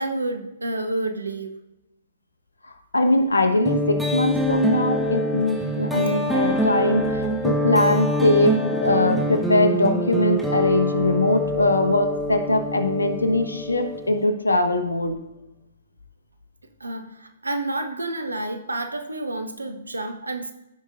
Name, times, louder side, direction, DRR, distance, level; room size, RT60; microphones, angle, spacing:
voice 1, 0.0-1.6 16.8-20.5, right 2 dB, 85° right, 7 dB, 1.0 m, -29 dB
voice 2, 2.7-15.1, left 2 dB, 85° left, 6 dB, 1.1 m, -21 dB
sound 1, 3.7-14.2, equal, ahead, 1.0 m, -25 dB
15.0 x 5.3 x 2.5 m, 0.89 s
figure-of-eight pair, 120°, 0 cm